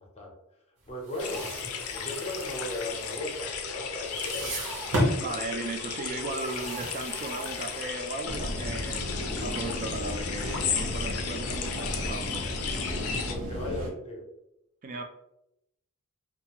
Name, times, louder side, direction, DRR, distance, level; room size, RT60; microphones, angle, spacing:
voice 1, 0.9-1.5 1.9-4.5 13.3-14.2, left 1 dB, 30° left, -1 dB, 0.6 m, -36 dB
sound 1, 0.9-3.7 4.0-5.3 6.3-8.2, equal, 60° right, 0.9 m, -34 dB
sound 2, 1.2-13.3, left 6 dB, 75° left, 0.4 m, -35 dB
voice 2, 5.2-12.6 14.8-15.0, right 2 dB, 35° right, 4 dB, 0.4 m, -36 dB
sound 3, 8.2-13.9, equal, 85° right, 0.9 m, -34 dB
2.5 x 2.3 x 2.8 m, 0.82 s
head